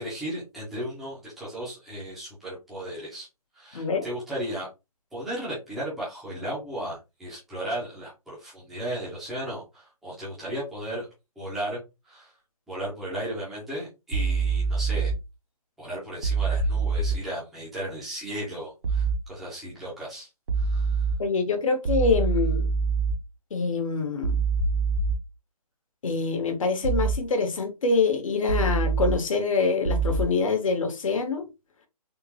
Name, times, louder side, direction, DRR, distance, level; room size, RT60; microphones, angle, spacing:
voice 1, 0.0-3.3 3.5-4.7 5.1-11.1 11.4-11.8 12.0-12.3 12.7-15.1 15.8-20.3 20.6-21.0, right 1 dB, ahead, 0.5 m, -35 dB
voice 2, 3.7-4.1 21.2-22.7 23.5-24.4 26.0-31.4, left 4 dB, 55° left, 0.9 m, -25 dB
sound 1, 14.1-15.1 16.2-17.2 18.8-19.2 20.5-21.1 21.9-23.1 24.2-25.2 26.8-27.2 28.5-29.1 29.9-30.2, right 4 dB, 45° right, 0.7 m, -24 dB
3.6 x 2.3 x 2.9 m
hypercardioid pair, 165°, 20 cm